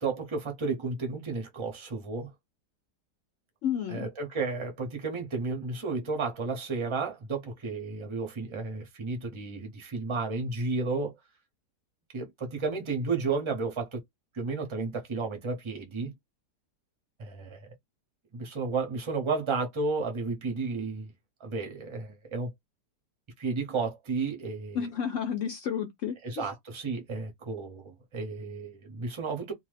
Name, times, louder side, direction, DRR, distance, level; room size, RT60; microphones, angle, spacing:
voice 1, 0.0-2.3 3.9-11.1 12.1-14.0 14.3-16.1 17.2-17.7 18.3-21.1 21.4-22.5 23.4-24.8 26.2-29.5, right 4 dB, 30° right, 0.5 m, -32 dB
voice 2, 3.6-4.1 24.7-26.5, left 8 dB, 70° left, 0.7 m, -31 dB
2.7 x 2.3 x 3.2 m
omnidirectional pair, 1.8 m